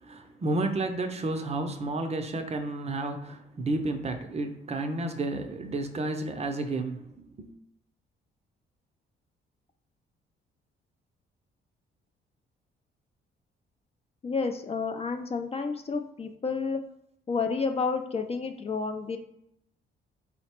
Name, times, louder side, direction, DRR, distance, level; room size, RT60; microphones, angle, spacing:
voice 1, 0.0-7.1 7.4-7.5, right 2 dB, 35° right, 6 dB, 0.5 m, -31 dB
voice 2, 14.2-16.8 17.3-19.2, left 4 dB, 30° left, 5 dB, 0.4 m, -30 dB
3.9 x 2.1 x 4.3 m, 0.76 s
cardioid pair, 90°, 20 cm